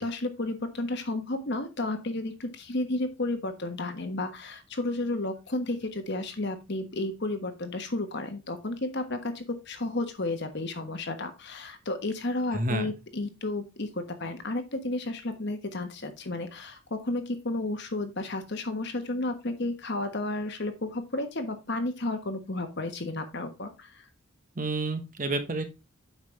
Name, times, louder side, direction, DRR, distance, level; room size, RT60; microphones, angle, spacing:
voice 1, 0.0-24.1, left 2 dB, 50° left, 7 dB, 1.3 m, -32 dB
voice 2, 12.5-12.9 24.6-25.7, right 2 dB, 40° right, 7 dB, 1.2 m, -29 dB
8.3 x 5.8 x 3.3 m, 0.26 s
head